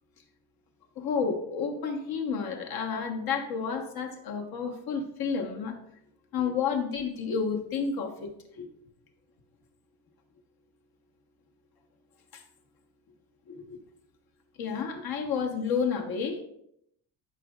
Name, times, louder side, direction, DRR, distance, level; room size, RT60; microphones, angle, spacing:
voice 1, 1.0-5.8 6.3-8.7 12.3-12.4 13.5-13.8 14.6-16.4, left 6 dB, 65° left, 2 dB, 1.3 m, -31 dB
12.5 x 5.3 x 2.4 m, 0.76 s
cardioid pair, 135°, 39 cm